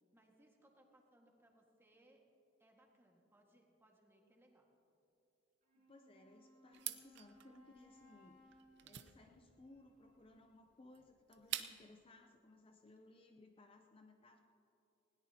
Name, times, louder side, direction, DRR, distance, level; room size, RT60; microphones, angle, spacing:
voice 1, 0.1-2.2 2.6-4.7, right 1 dB, 15° right, 0 dB, 1.7 m, -69 dB
Wind instrument woodwind instrument, 5.6-10.6, left 1 dB, 45° right, 3.5 m, -67 dB
voice 2, 5.7-14.4, left 2 dB, 30° left, 4 dB, 0.6 m, -62 dB
sound 1, 6.7-12.0, right 12 dB, 65° right, 0.6 m, -48 dB
20.0 x 17.5 x 2.8 m, 2.9 s
head